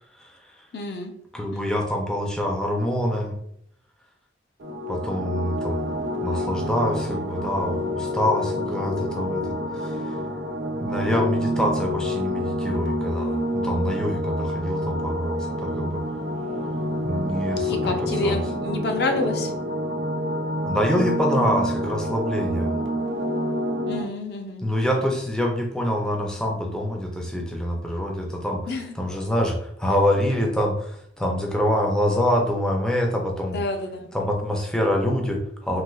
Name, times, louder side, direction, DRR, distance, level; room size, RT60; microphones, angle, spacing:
voice 1, 0.7-1.1 1.5-1.8 17.7-19.5 23.9-24.6 28.7-28.9 33.5-34.1, left 2 dB, 60° left, 4 dB, 0.4 m, -28 dB
voice 2, 1.3-3.3 4.9-5.9 6.2-10.0 10.8-16.0 17.0-18.4 20.6-22.7 24.6-33.6 34.1-35.8, equal, 5° left, 0 dB, 0.3 m, -25 dB
sound 1, 4.6-24.0, equal, 85° right, 0.6 m, -28 dB
3.1 x 2.9 x 2.3 m, 0.73 s
head